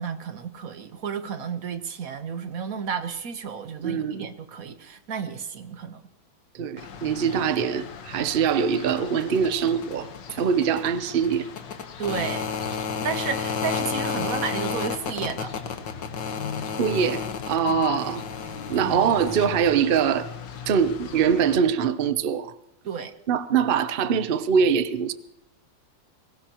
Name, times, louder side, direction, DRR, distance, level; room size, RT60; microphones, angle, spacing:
voice 1, 0.0-6.0 12.0-12.4 13.0-15.5 17.6-17.9 18.8-19.0 22.8-23.1, right 6 dB, 55° right, 1.4 m, -32 dB
voice 2, 3.8-4.3 6.5-11.5 16.8-18.2 18.7-20.3 20.7-22.5 23.3-25.1, right 7 dB, 70° right, 0.5 m, -23 dB
sound 1, 6.8-21.6, left 6 dB, 75° left, 1.8 m, -33 dB
21.5 x 18.0 x 3.0 m
omnidirectional pair, 2.0 m